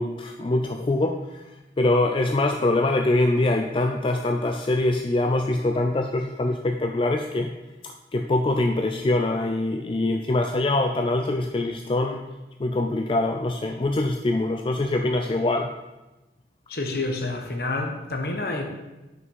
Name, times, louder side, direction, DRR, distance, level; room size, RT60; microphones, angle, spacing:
voice 1, 0.0-1.4 1.8-7.5 7.8-12.3 12.6-15.7, left 2 dB, 30° left, 4 dB, 0.3 m, -24 dB
voice 2, 16.7-18.6, left 2 dB, 55° left, 4 dB, 1.0 m, -28 dB
6.0 x 5.9 x 5.4 m, 1.1 s
head